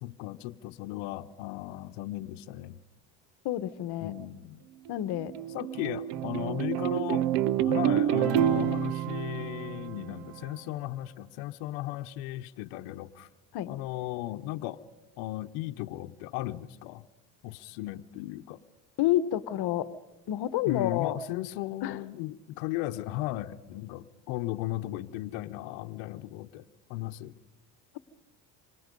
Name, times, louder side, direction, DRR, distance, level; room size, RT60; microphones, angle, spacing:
voice 1, 0.0-2.8 4.0-4.6 5.5-7.3 7.6-13.3 13.7-14.8 15.2-17.1 17.4-18.6 20.6-26.6 26.9-27.3, left 15 dB, 75° left, 8 dB, 1.0 m, -36 dB
voice 2, 3.4-4.1 4.9-5.3 13.5-13.7 19.0-19.9 20.3-21.2 21.8-22.0, left 13 dB, 50° left, 15 dB, 1.2 m, -29 dB
sound 1, 4.9-10.5, right 12 dB, 55° right, 0.7 m, -28 dB
27.5 x 24.5 x 5.3 m, 1.0 s
supercardioid pair, 110°, 49 cm